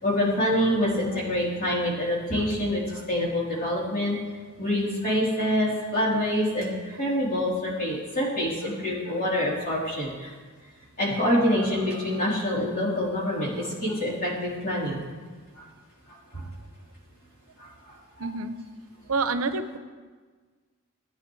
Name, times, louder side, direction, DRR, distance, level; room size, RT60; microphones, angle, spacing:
voice 1, 0.0-4.1 4.6-10.3 11.0-15.0 15.6-15.7 16.1-16.5 17.6-18.0, left 1 dB, 40° left, -6 dB, 3.5 m, -26 dB
voice 2, 18.2-18.5 19.1-19.8, right 3 dB, 75° right, 10 dB, 0.6 m, -27 dB
17.0 x 9.1 x 3.2 m, 1.4 s
head